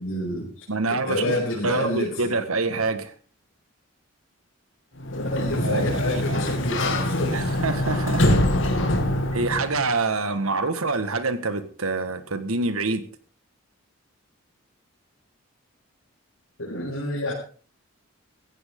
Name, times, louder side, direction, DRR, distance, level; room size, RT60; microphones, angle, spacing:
voice 1, 0.0-0.7 1.1-2.3 2.6-2.8 5.1-7.5 16.6-17.3, left 1 dB, 75° left, -6 dB, 5.9 m, -28 dB
voice 2, 0.7-3.1 5.6-6.4 7.3-8.2 8.8-8.9 9.3-13.1, right 3 dB, 80° right, 10 dB, 1.7 m, -26 dB
Sliding door, 5.0-9.9, left 1 dB, 60° left, 2.6 m, -24 dB
16.5 x 15.5 x 3.8 m, 0.40 s
head